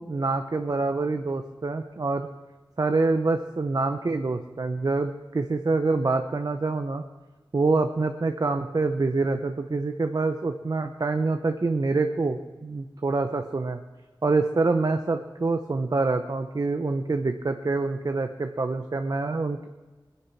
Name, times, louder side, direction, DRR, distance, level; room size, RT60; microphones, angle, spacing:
voice 1, 0.0-2.3 2.8-7.0 7.5-13.8 14.2-19.7, right 3 dB, 50° right, 6 dB, 0.8 m, -26 dB
19.5 x 10.5 x 5.8 m, 1.2 s
wide cardioid pair, 55°, 8 cm